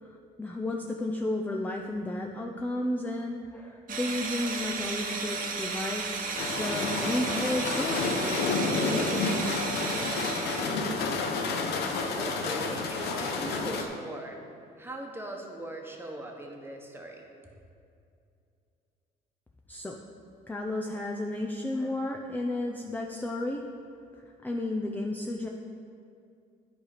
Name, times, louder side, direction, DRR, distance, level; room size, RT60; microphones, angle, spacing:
voice 1, 0.0-9.3 19.7-20.0 20.5-23.7 24.4-25.5, left 1 dB, 10° left, 1 dB, 0.5 m, -33 dB
sound 1, 3.9-10.8, right 4 dB, 55° right, 1.0 m, -34 dB
sound 2, 6.4-13.8, left 3 dB, 75° left, 0.9 m, -30 dB
voice 2, 12.2-14.4 14.8-17.3, right 1 dB, 15° right, 1 dB, 1.2 m, -40 dB
11.0 x 4.9 x 5.0 m, 2.5 s
cardioid pair, 110°, 17 cm